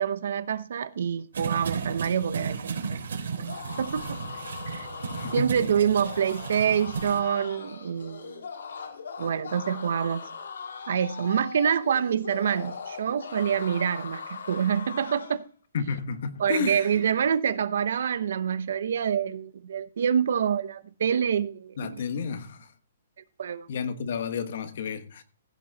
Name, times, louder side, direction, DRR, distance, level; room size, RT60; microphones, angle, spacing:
voice 1, 0.0-4.2 4.7-4.9 5.3-8.4 9.2-10.2 10.9-15.4 16.4-22.0 23.4-23.7, right 8 dB, 60° right, 0.8 m, -27 dB
sound 1, 1.3-7.2, right 5 dB, 85° right, 3.6 m, -35 dB
sound 2, 3.3-15.4, left 5 dB, 90° left, 2.5 m, -40 dB
voice 2, 5.1-5.5 15.7-16.9 21.8-22.7 23.7-25.2, left 5 dB, 55° left, 1.3 m, -31 dB
15.5 x 6.2 x 4.1 m
hypercardioid pair, 170°, 0 cm